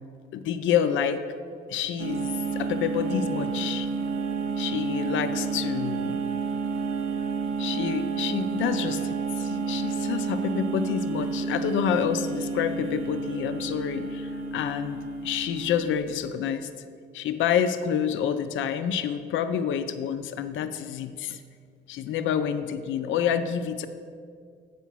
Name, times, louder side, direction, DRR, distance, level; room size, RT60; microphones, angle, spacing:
voice 1, 0.3-1.2 1.7-3.9 4.6-6.2 7.6-16.7 17.1-21.4 21.9-23.9, left 8 dB, 75° left, 9 dB, 0.5 m, -28 dB
sound 1, 2.0-16.2, right 4 dB, 90° right, 0.6 m, -30 dB
8.0 x 5.0 x 6.0 m, 2.2 s
cardioid pair, 90°, 20 cm